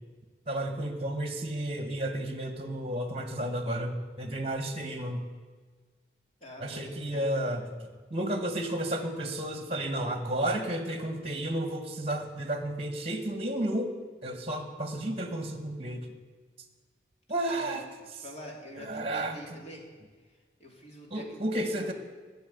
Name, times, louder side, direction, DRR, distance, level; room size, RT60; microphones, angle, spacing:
voice 1, 0.5-5.2 6.6-7.6 8.1-13.9 14.2-16.1 17.3-17.8 18.8-19.4 21.1-21.9, right 1 dB, 30° right, 7 dB, 1.6 m, -32 dB
voice 2, 6.4-7.3 17.4-17.8 18.1-19.9 20.1-21.9, equal, 35° left, -1 dB, 2.8 m, -46 dB
12.0 x 7.5 x 9.5 m, 1.4 s
head